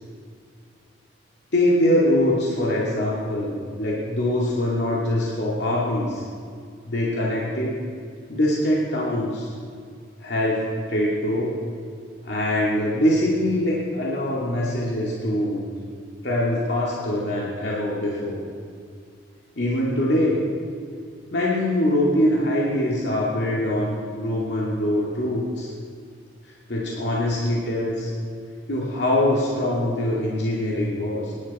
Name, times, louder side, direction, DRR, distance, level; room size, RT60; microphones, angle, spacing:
voice 1, 1.5-6.2 6.9-7.8 8.3-9.5 10.2-11.5 12.2-15.6 16.2-18.4 19.6-20.4 21.3-25.7 26.7-28.1 28.7-31.3, left 1 dB, 65° left, -5 dB, 2.4 m, -23 dB
24.0 x 11.5 x 4.3 m, 2.2 s
head